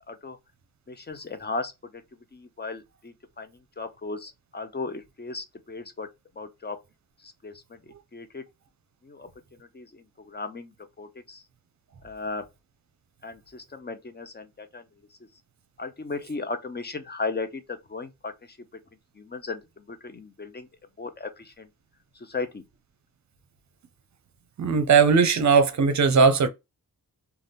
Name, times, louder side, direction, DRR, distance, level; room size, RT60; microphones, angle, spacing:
voice 1, 0.9-2.0 2.3-6.1 6.4-6.8 7.2-8.4 9.0-9.3 9.6-11.4 12.0-12.5 13.2-14.8 15.8-18.6 19.2-20.7 21.0-21.7 22.2-22.6, left 3 dB, 30° left, 0.6 m, -36 dB
voice 2, 24.6-26.5, right 5 dB, 50° right, 0.6 m, -19 dB
2.5 x 2.3 x 3.4 m
cardioid pair, 75°, 35 cm